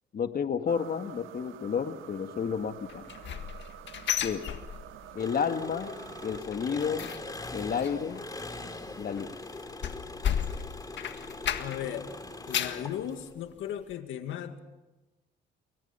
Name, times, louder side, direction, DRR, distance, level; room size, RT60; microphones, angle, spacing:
voice 1, 0.1-3.1 4.2-4.5 5.2-5.9 6.2-7.1 7.5-8.2 9.0-9.3, left 6 dB, 50° left, 1.9 m, -31 dB
sound 1, 0.7-6.4, right 13 dB, 85° right, 0.9 m, -48 dB
sound 2, 2.9-5.2 5.5-5.9 6.2-12.0 12.3-12.9 13.4-13.5 13.9-14.0, left 9 dB, 65° left, 1.7 m, -34 dB
Engine, 5.2-13.3, left 2 dB, 20° left, 3.0 m, -41 dB
voice 2, 11.6-12.1 12.5-14.6, left 10 dB, 85° left, 2.1 m, -36 dB
29.0 x 24.0 x 5.7 m
cardioid pair, 90°, 20 cm